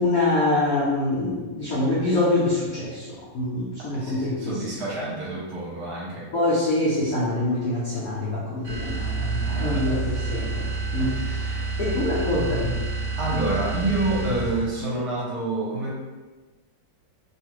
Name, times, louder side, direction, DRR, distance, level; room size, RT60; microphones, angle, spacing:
voice 1, 0.0-4.6 6.3-11.2 11.8-12.8, left 2 dB, 75° left, -7 dB, 0.8 m, -25 dB
voice 2, 3.9-6.3 9.5-9.8 11.0-11.7 13.2-16.0, right 2 dB, 60° right, -6 dB, 1.2 m, -28 dB
sound 1, 8.6-14.8, right 3 dB, 20° right, 0.9 m, -29 dB
3.0 x 2.4 x 2.9 m, 1.3 s
omnidirectional pair, 2.2 m